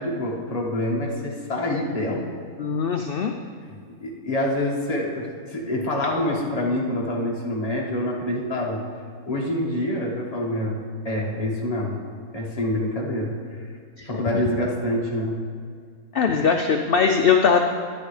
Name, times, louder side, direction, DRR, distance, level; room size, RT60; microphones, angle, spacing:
voice 1, 0.0-2.2 4.0-8.8 9.3-12.0 12.3-13.6 14.0-15.4, left 1 dB, 25° left, -3 dB, 1.5 m, -26 dB
voice 2, 2.6-3.3 14.0-14.4 16.1-17.6, left 6 dB, 65° left, 4 dB, 0.5 m, -21 dB
12.5 x 10.5 x 3.2 m, 2.1 s
omnidirectional pair, 1.5 m